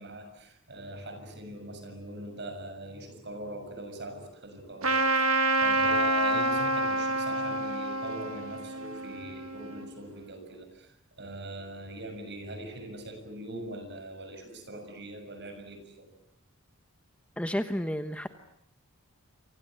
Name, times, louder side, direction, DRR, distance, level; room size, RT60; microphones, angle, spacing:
voice 1, 0.0-16.1, right 1 dB, 50° right, 8 dB, 6.9 m, -42 dB
Trumpet, 4.8-9.9, right 1 dB, 70° right, 2.0 m, -27 dB
voice 2, 17.4-18.3, equal, 5° left, 8 dB, 1.1 m, -31 dB
29.0 x 25.5 x 7.9 m, 0.72 s
head